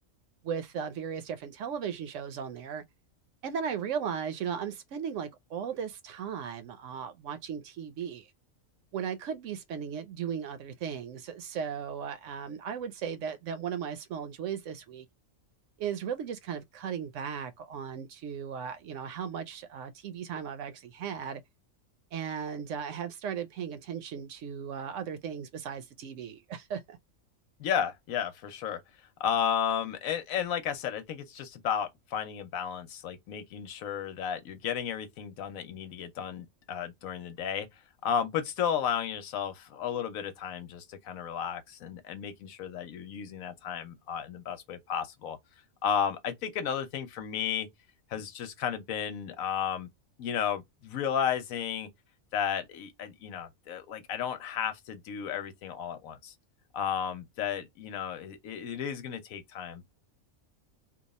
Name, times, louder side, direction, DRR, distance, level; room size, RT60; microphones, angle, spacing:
voice 1, 0.4-2.8 3.4-8.3 8.9-15.1 15.8-21.4 22.1-27.0, right 7 dB, 70° right, 0.9 m, -36 dB
voice 2, 27.6-28.8 29.2-37.7 38.0-45.4 45.8-47.7 48.1-49.9 50.2-51.9 52.3-56.3 56.7-59.8, left 8 dB, 90° left, 1.2 m, -33 dB
2.9 x 2.3 x 4.0 m
omnidirectional pair, 1.4 m